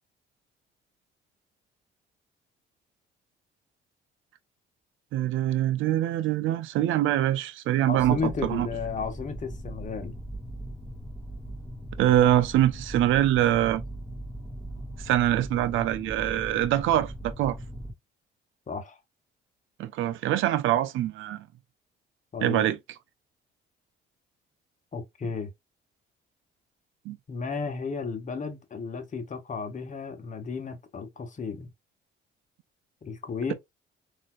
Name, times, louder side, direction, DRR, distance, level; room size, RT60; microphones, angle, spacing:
voice 1, 5.1-8.7 12.0-13.8 15.0-17.6 19.8-21.4 22.4-22.8 27.1-27.2, right 12 dB, 85° right, 0.5 m, -24 dB
voice 2, 7.9-10.1 18.7-19.0 22.3-22.8 24.9-25.5 27.3-31.7 33.0-33.5, left 5 dB, 40° left, 1.1 m, -33 dB
sound 1, 7.9-17.9, right 1 dB, ahead, 1.6 m, -39 dB
4.0 x 2.9 x 2.2 m
cardioid pair, 90°, 20 cm